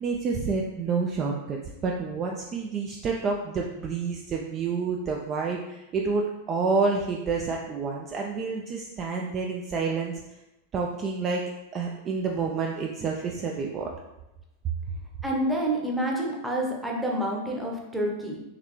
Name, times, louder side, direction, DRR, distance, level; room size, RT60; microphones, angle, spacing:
voice 1, 0.0-10.1 10.7-11.4 11.7-13.9, right 4 dB, 30° right, 0 dB, 0.4 m, -29 dB
voice 2, 15.2-18.4, right 1 dB, 5° right, -2 dB, 0.9 m, -28 dB
3.9 x 3.1 x 3.1 m, 0.94 s
figure-of-eight pair, 90°, 0 cm